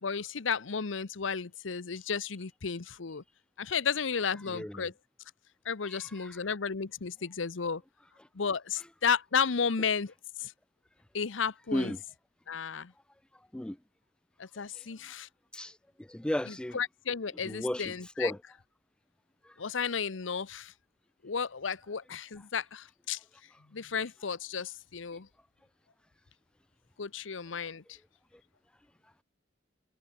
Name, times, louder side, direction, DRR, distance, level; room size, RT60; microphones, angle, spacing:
voice 1, 0.0-3.2 3.6-4.9 5.6-7.8 8.3-10.1 10.4-10.5 11.1-11.9 12.5-12.9 14.4-15.3 16.7-18.3 19.6-20.7 21.2-23.2 23.7-25.3 27.0-28.0, left 6 dB, 85° left, 0.8 m, -33 dB
voice 2, 4.5-4.9 5.8-6.4 11.7-12.0 13.5-13.8 14.6-14.9 15.5-16.8 17.4-18.4 19.4-19.6 28.3-28.4, left 1 dB, 5° left, 0.3 m, -35 dB
head